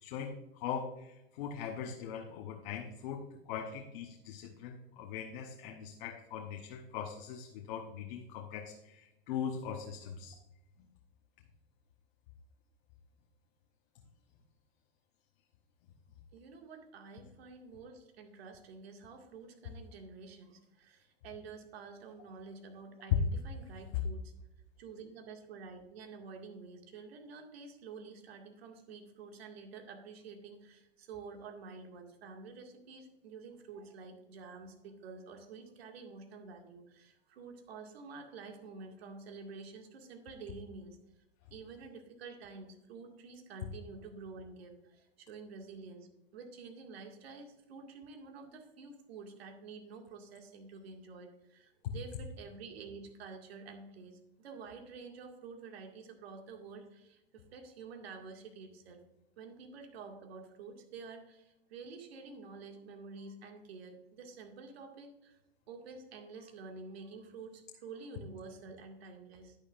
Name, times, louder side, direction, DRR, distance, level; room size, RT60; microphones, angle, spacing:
voice 1, 0.0-10.4 23.9-24.0, left 8 dB, 50° left, 3 dB, 1.1 m, -41 dB
voice 2, 16.3-24.3 24.8-41.0 41.5-59.0 59.4-65.4 65.7-69.6, right 4 dB, 75° right, 3 dB, 2.1 m, -49 dB
10.5 x 10.0 x 2.5 m, 0.91 s
supercardioid pair, 145°, 31 cm